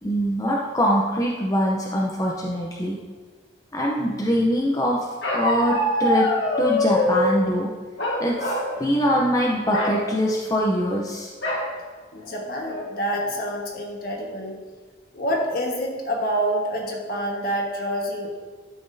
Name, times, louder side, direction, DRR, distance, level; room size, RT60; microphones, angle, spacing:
voice 1, 0.0-3.0 3.7-5.0 5.3-6.3 6.6-7.7 8.2-11.3, equal, 20° left, -3 dB, 0.6 m, -23 dB
Bark, 5.2-7.3 8.0-8.7 9.0-9.3 9.6-10.0 11.4-11.7 12.2-12.3 12.6-13.1, left 1 dB, 70° left, 1.5 m, -24 dB
voice 2, 12.1-14.6 15.1-18.3, equal, 50° left, 0 dB, 1.4 m, -27 dB
12.0 x 5.9 x 2.7 m, 1.4 s
head